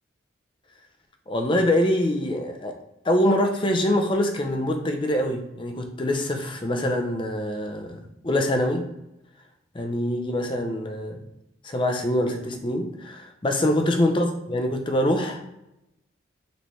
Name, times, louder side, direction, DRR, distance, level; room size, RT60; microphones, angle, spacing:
voice 1, 1.3-2.8 3.0-8.8 9.7-11.2 11.6-15.4, left 1 dB, 25° left, 4 dB, 0.5 m, -24 dB
5.2 x 3.2 x 3.1 m, 0.88 s
head